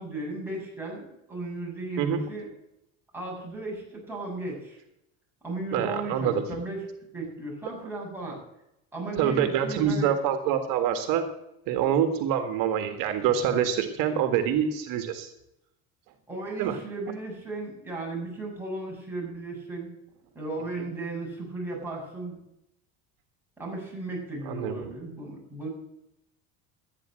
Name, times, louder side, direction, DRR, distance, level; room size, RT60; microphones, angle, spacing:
voice 1, 0.0-2.5 3.1-4.8 5.4-6.8 7.1-8.4 8.9-10.1 16.3-19.9 20.3-22.4 23.6-25.7, right 2 dB, 5° right, -3 dB, 7.3 m, -35 dB
voice 2, 5.7-6.4 9.2-11.2 11.7-15.3 16.6-16.8 24.5-24.7, right 8 dB, 75° right, 7 dB, 1.8 m, -25 dB
13.5 x 9.8 x 7.6 m, 0.84 s
cardioid pair, 135°, 34 cm